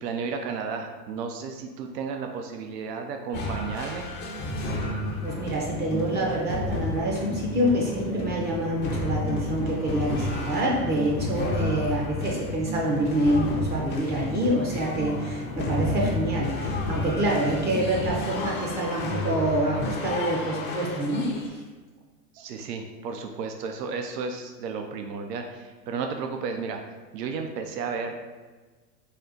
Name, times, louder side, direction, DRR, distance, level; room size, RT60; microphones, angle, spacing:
voice 1, 0.0-4.1 22.3-28.2, right 5 dB, 75° right, 4 dB, 0.7 m, -33 dB
sound 1, 3.3-21.5, left 1 dB, 20° left, 0.5 m, -31 dB
voice 2, 5.2-21.3, right 1 dB, 20° right, -2 dB, 0.6 m, -26 dB
4.2 x 2.3 x 3.8 m, 1.3 s
hypercardioid pair, 120°, 49 cm